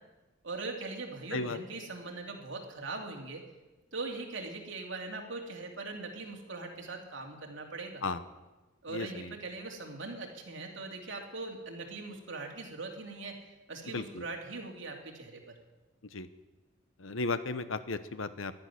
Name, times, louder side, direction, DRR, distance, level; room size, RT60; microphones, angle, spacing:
voice 1, 0.4-3.4 3.9-8.0 8.8-13.4 13.7-15.6, right 3 dB, 70° right, 1 dB, 2.7 m, -41 dB
voice 2, 8.9-9.3 13.9-14.2 16.1-16.3 17.0-18.5, left 3 dB, 85° left, 12 dB, 1.0 m, -35 dB
12.0 x 10.5 x 9.9 m, 1.1 s
head